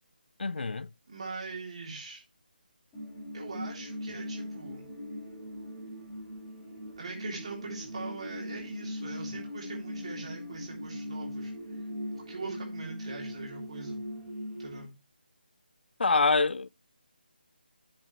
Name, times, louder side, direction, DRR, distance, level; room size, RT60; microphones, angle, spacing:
voice 1, 0.4-0.9 16.0-16.7, left 4 dB, 85° left, 0.5 m, -25 dB
voice 2, 1.1-2.2 3.3-4.9 7.0-11.5 12.1-14.0 14.6-14.9, right 3 dB, 40° right, 3.3 m, -41 dB
sound 1, 2.9-14.8, left 1 dB, ahead, 4.2 m, -40 dB
8.6 x 7.6 x 3.0 m
figure-of-eight pair, 175°, 5 cm